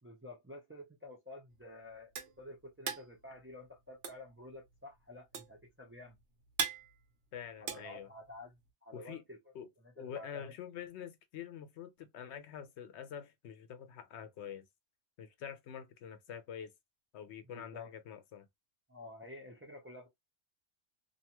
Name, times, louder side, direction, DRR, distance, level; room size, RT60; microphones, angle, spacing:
voice 1, 0.0-2.1 2.4-6.2 7.6-9.5 9.8-10.6 17.5-17.9 18.9-20.1, left 2 dB, 15° right, 0.4 m, -50 dB
sound 1, 1.5-8.7, right 6 dB, 90° right, 1.0 m, -41 dB
voice 2, 7.3-8.1 8.9-9.2 9.5-9.7 10.0-14.7 15.2-16.7 17.1-18.5, left 8 dB, 80° left, 0.9 m, -46 dB
2.6 x 2.2 x 2.8 m
omnidirectional pair, 1.1 m